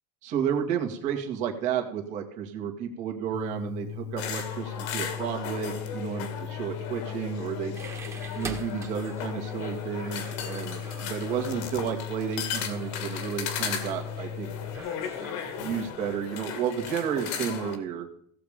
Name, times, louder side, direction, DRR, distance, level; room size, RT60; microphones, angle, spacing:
voice 1, 0.2-7.8 8.4-14.5 15.6-18.1, right 8 dB, 50° right, 2 dB, 2.1 m, -32 dB
sound 1, 3.3-14.8, left 8 dB, 50° left, 0.8 m, -38 dB
sound 2, 4.2-17.7, left 8 dB, 75° left, 2.1 m, -36 dB
sound 3, 7.7-15.9, right 3 dB, 15° right, 1.7 m, -45 dB
16.5 x 7.2 x 5.1 m, 0.65 s
supercardioid pair, 140°, 15 cm